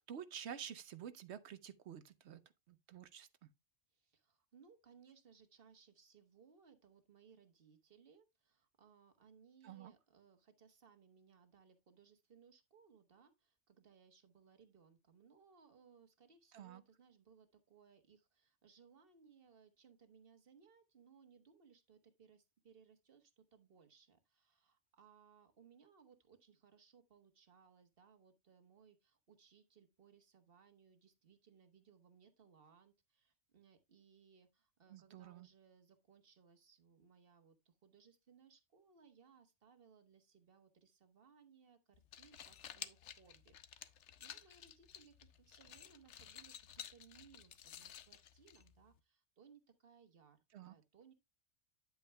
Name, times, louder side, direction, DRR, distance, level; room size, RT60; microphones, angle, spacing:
voice 1, 0.1-2.4 2.7-3.5 9.6-9.9 16.5-16.8 34.9-35.5 50.5-50.7, right 8 dB, 65° right, 0.9 m, -50 dB
voice 2, 3.9-51.1, right 6 dB, 50° right, 1.4 m, -66 dB
sound 1, 41.9-49.0, left 9 dB, 75° left, 1.0 m, -54 dB
9.4 x 8.2 x 2.2 m
omnidirectional pair, 1.2 m